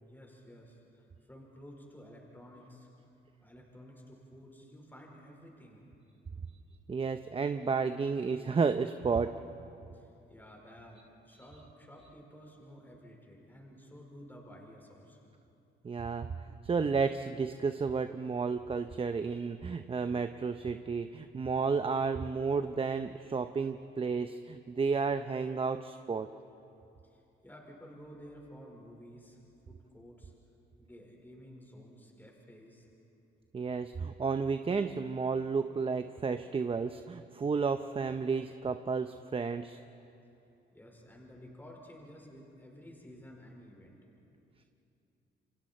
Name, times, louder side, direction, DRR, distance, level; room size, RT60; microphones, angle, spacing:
voice 1, 0.0-2.9 3.4-5.8 9.9-15.3 27.1-29.4 29.7-30.3 30.8-32.9 40.7-44.0, equal, 10° left, -1 dB, 4.9 m, -53 dB
voice 2, 6.9-9.3 15.8-16.3 16.6-26.3 33.5-39.8, right 5 dB, 30° right, 9 dB, 0.7 m, -32 dB
29.0 x 24.0 x 4.4 m, 2.7 s
cardioid pair, 90°, 20 cm